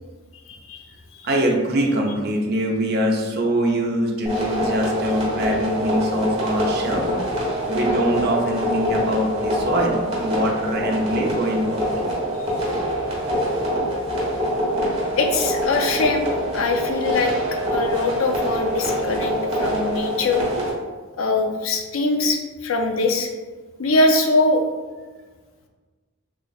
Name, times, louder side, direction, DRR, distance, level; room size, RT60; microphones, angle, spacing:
voice 1, 0.5-0.8 15.2-17.3 17.7-20.4 21.2-23.3 23.8-24.6, left 2 dB, 75° left, 3 dB, 0.5 m, -22 dB
voice 2, 1.2-7.1 7.7-11.8, right 1 dB, 50° right, 0 dB, 0.6 m, -23 dB
sound 1, 4.3-20.7, equal, 30° right, 1.1 m, -25 dB
3.1 x 2.4 x 3.9 m, 1.4 s
head